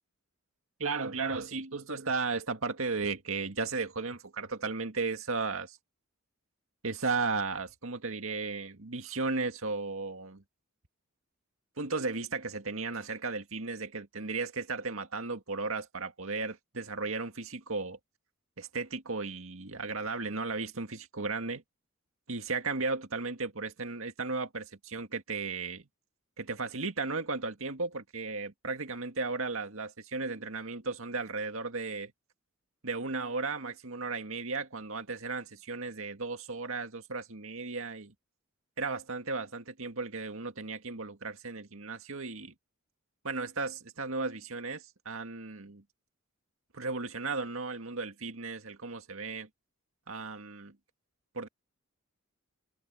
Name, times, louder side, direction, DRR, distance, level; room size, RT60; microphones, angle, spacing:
voice 1, 0.8-5.8 6.8-10.4 11.8-18.0 18.6-21.6 22.3-25.8 26.4-32.1 32.8-38.1 38.8-42.5 43.2-45.8 46.7-49.5 50.1-50.8 51.3-51.5, right 4 dB, 70° right, 2.0 m, -35 dB
head